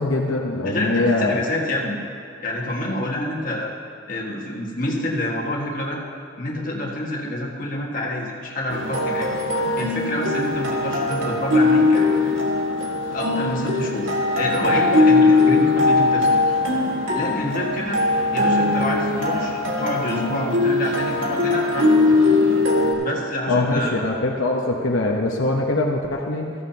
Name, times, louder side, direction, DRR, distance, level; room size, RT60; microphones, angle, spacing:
voice 1, 0.0-1.4 23.5-26.5, left 2 dB, 80° left, 0 dB, 0.9 m, -22 dB
voice 2, 0.6-2.0 2.4-3.7 4.1-6.0 6.4-9.3 9.8-12.0 13.1-16.4 17.1-18.0 18.3-21.9 23.0-24.0, left 1 dB, 40° left, -2 dB, 1.6 m, -27 dB
sound 1, 8.7-22.9, left 2 dB, 75° right, 1.8 m, -20 dB
14.5 x 14.0 x 2.9 m, 2.5 s
head